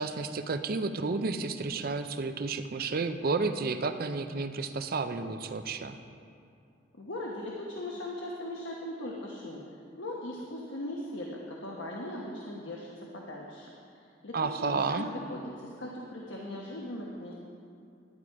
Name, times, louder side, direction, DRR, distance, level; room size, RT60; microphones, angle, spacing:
voice 1, 0.0-6.0 14.3-15.1, right 4 dB, 55° right, 9 dB, 0.5 m, -31 dB
voice 2, 6.9-9.6 9.9-17.3, left 1 dB, 90° left, -2 dB, 1.2 m, -39 dB
11.0 x 10.0 x 4.7 m, 2.5 s
head